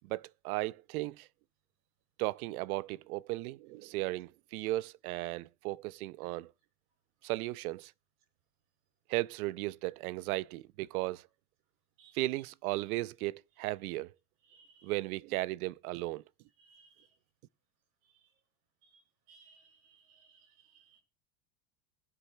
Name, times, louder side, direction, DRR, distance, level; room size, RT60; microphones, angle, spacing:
voice 1, 0.0-1.3 2.2-6.5 7.2-7.9 9.1-11.3 12.1-14.1 14.8-16.2, right 19 dB, 85° right, 0.6 m, -36 dB
voice 2, 14.5-14.9 16.7-17.1 19.3-21.0, right 5 dB, 65° right, 5.2 m, -62 dB
21.0 x 10.0 x 2.2 m
supercardioid pair, 140°, 42 cm